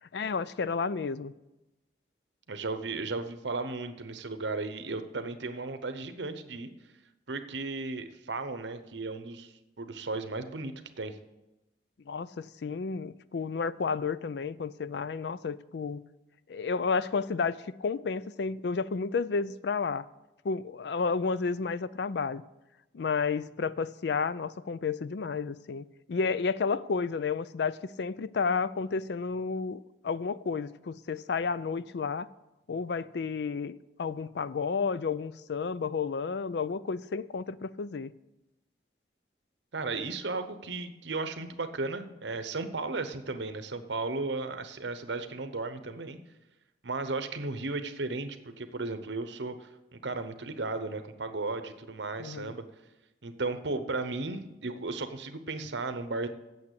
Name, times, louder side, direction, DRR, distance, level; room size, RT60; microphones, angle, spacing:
voice 1, 0.1-1.3 12.1-16.0 16.5-20.1 20.4-22.4 22.9-32.3 32.7-33.7 34.0-38.1 52.2-52.5, left 5 dB, 70° left, 0.4 m, -31 dB
voice 2, 2.5-6.7 7.3-11.2 39.7-46.2 46.8-52.6 53.2-56.3, right 3 dB, 80° right, 0.9 m, -35 dB
8.7 x 7.1 x 8.1 m
head